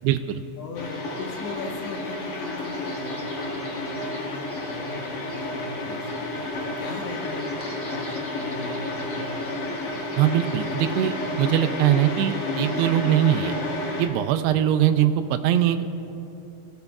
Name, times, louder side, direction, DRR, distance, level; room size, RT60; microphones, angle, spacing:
voice 1, 0.0-0.4 10.2-13.6 14.0-15.8, right 11 dB, 85° right, 8 dB, 2.3 m, -22 dB
voice 2, 0.6-9.6, left 3 dB, 80° left, 1 dB, 3.6 m, -39 dB
sound 1, 0.7-14.1, left 2 dB, 50° left, 2.3 m, -31 dB
sound 2, 1.0-12.9, equal, 15° left, 0.5 m, -43 dB
26.0 x 16.0 x 2.4 m, 2.9 s
omnidirectional pair, 5.1 m